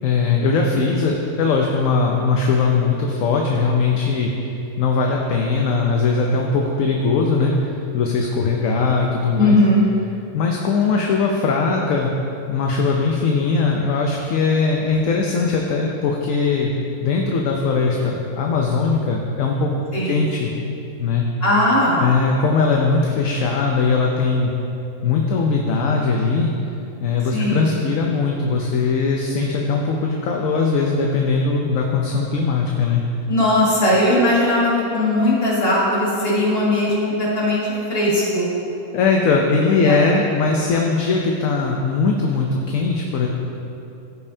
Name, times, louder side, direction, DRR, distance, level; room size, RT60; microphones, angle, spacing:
voice 1, 0.0-4.3 4.8-9.6 10.3-12.1 12.5-16.7 17.0-19.7 20.0-20.5 21.0-21.3 22.0-24.5 25.0-26.5 27.0-33.0 38.9-43.3, left 4 dB, 70° left, 0 dB, 1.0 m, -20 dB
voice 2, 9.3-9.8 19.9-20.2 21.4-22.0 27.3-27.7 33.3-38.5 39.8-40.2, left 1 dB, 40° left, -8 dB, 2.2 m, -18 dB
15.0 x 5.3 x 2.7 m, 2.8 s
omnidirectional pair, 1.5 m